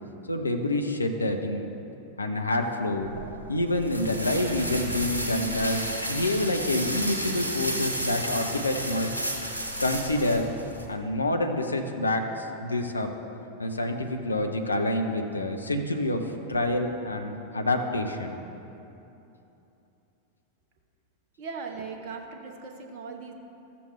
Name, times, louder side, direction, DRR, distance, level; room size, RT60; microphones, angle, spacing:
voice 1, 0.3-1.7 2.2-3.1 3.5-9.1 9.8-10.5 10.9-13.1 13.6-18.4, left 1 dB, 80° left, 5 dB, 0.7 m, -27 dB
sound 1, 3.0-10.9, equal, 90° right, 1.1 m, -32 dB
voice 2, 21.4-23.3, right 5 dB, 45° right, 2 dB, 0.9 m, -38 dB
14.5 x 6.9 x 3.2 m, 2.9 s
figure-of-eight pair, 90°, 0 cm